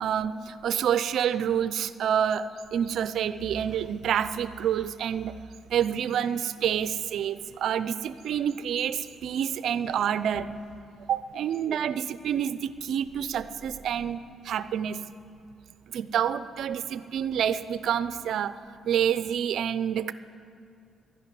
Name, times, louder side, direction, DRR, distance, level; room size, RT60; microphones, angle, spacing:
voice 1, 0.0-5.4 5.7-10.5 11.1-15.0 15.9-18.6 18.8-20.1, right 9 dB, 70° right, 14 dB, 0.5 m, -28 dB
12.0 x 11.0 x 9.7 m, 2.4 s
cardioid pair, 90°, 0 cm